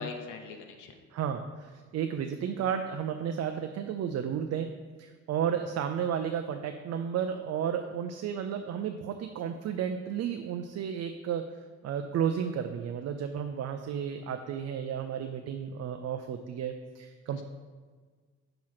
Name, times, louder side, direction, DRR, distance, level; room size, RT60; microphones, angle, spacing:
voice 1, 0.0-0.9 17.3-17.4, left 5 dB, 80° left, 4 dB, 0.8 m, -41 dB
voice 2, 1.1-4.7 5.0-11.4 11.8-17.4, right 8 dB, 55° right, 6 dB, 0.4 m, -32 dB
6.2 x 3.0 x 5.7 m, 1.5 s
cardioid pair, 90°, 30 cm